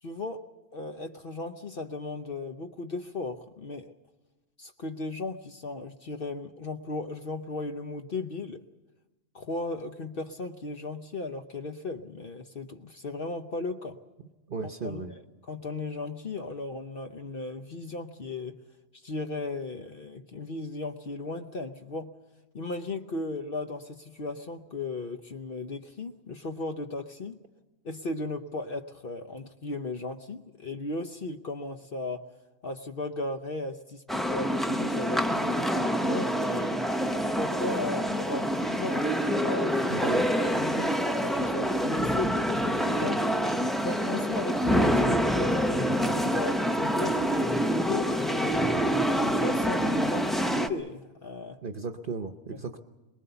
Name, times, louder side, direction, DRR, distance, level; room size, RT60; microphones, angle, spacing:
voice 1, 0.0-0.4 0.7-3.9 4.6-8.6 9.3-14.0 14.8-18.6 18.9-22.1 22.5-27.4 27.8-32.2 32.6-36.8 37.3-43.3 43.8-48.8 49.2-51.6 52.5-52.6, left 2 dB, 50° left, 6 dB, 1.0 m, -36 dB
voice 2, 14.5-15.1 39.9-40.3 51.6-52.8, right 4 dB, 50° right, 7 dB, 1.0 m, -35 dB
sound 1, 34.1-50.7, equal, ahead, 0.7 m, -26 dB
23.0 x 20.5 x 6.9 m, 1.1 s
omnidirectional pair, 1.3 m